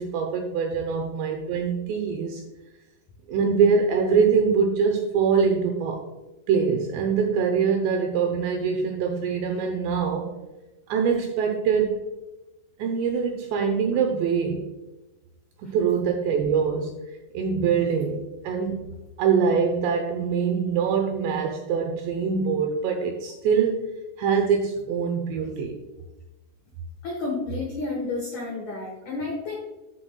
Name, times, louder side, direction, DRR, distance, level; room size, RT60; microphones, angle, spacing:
voice 1, 0.0-2.4 3.3-6.0 6.5-10.3 10.9-11.9 12.8-14.6 15.6-16.9 17.3-18.9 19.2-23.8 24.2-25.8, right 6 dB, 80° right, 2 dB, 2.6 m, -23 dB
voice 2, 27.0-29.6, left 3 dB, 80° left, -1 dB, 1.7 m, -31 dB
14.0 x 6.3 x 2.3 m, 1.1 s
omnidirectional pair, 5.8 m